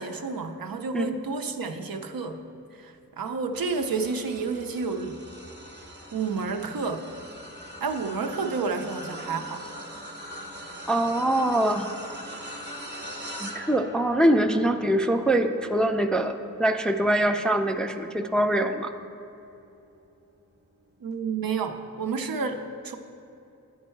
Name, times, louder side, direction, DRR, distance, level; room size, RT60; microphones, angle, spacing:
voice 1, 0.0-2.4 2.8-5.2 6.1-7.1 7.8-9.6 21.0-23.0, right 4 dB, 80° right, 5 dB, 0.6 m, -30 dB
sound 1, 3.5-19.0 19.6-19.8 21.1-21.2, equal, 30° right, 0.8 m, -42 dB
voice 2, 10.9-11.9 13.4-18.9, right 1 dB, ahead, 6 dB, 0.3 m, -23 dB
10.0 x 4.5 x 4.5 m, 2.9 s
wide cardioid pair, 55°, 34 cm